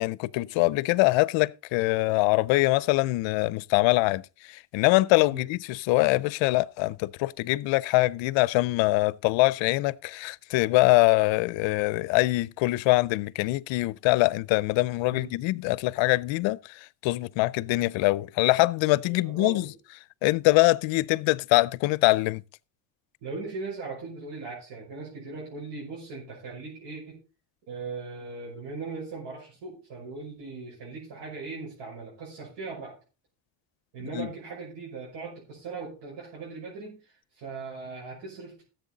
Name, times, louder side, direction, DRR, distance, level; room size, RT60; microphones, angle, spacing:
voice 1, 0.0-4.2 4.5-19.7 20.2-22.4 34.1-34.3, left 21 dB, 75° left, 0.6 m, -23 dB
voice 2, 19.1-19.7 23.2-27.2 27.7-33.0 33.9-38.6, right 4 dB, 65° right, 6.0 m, -39 dB
14.0 x 8.0 x 3.9 m
cardioid pair, 115°, 45 cm